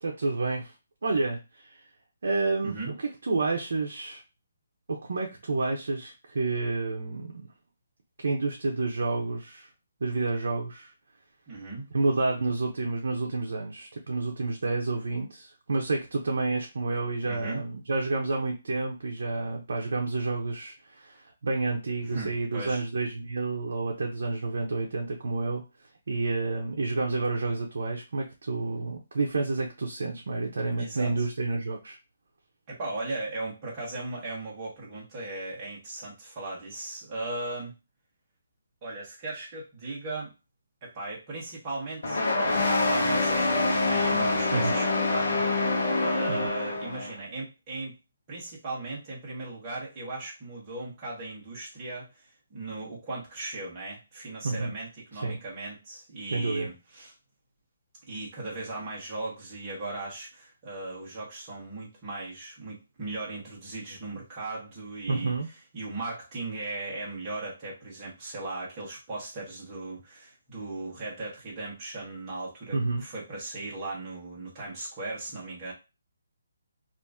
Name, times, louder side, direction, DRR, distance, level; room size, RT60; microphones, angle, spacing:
voice 1, 0.0-0.7 1.0-1.8 2.2-2.8 3.2-4.2 4.9-7.3 8.2-9.7 10.0-10.9 11.9-25.6 26.1-32.0 44.5-44.7 46.3-46.5 54.4-54.7 55.1-55.4 56.3-56.7 65.1-65.5 72.7-73.0, right 3 dB, 60° right, 0 dB, 0.7 m, -29 dB
voice 2, 2.6-2.9 11.5-11.8 17.2-17.6 22.0-22.8 30.8-31.1 32.7-37.7 38.8-40.3 40.8-48.0 48.3-57.1 58.1-65.3 65.7-75.7, right 2 dB, 15° right, -5 dB, 1.1 m, -37 dB
sound 1, 42.0-47.1, left 2 dB, 50° left, 0.9 m, -25 dB
2.9 x 2.5 x 3.5 m, 0.27 s
hypercardioid pair, 175°, 0 cm